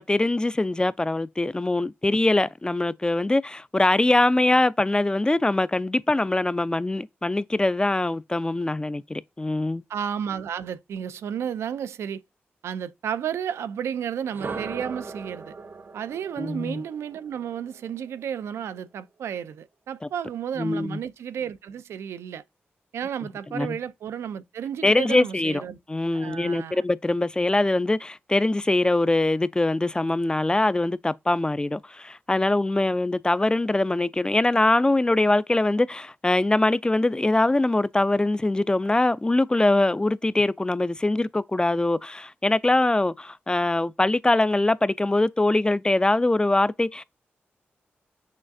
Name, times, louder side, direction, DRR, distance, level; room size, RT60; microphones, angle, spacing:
voice 1, 0.0-9.8 16.4-16.8 20.6-21.0 23.5-23.8 24.8-25.6 25.9-47.0, left 2 dB, 20° left, 0.3 m, -23 dB
voice 2, 9.9-12.2 12.6-15.6 15.9-22.4 22.9-25.8 26.1-26.8, right 8 dB, 85° right, 0.3 m, -32 dB
sound 1, 14.2-18.2, right 4 dB, 55° right, 0.7 m, -39 dB
6.3 x 2.3 x 2.5 m
cardioid pair, 50°, 4 cm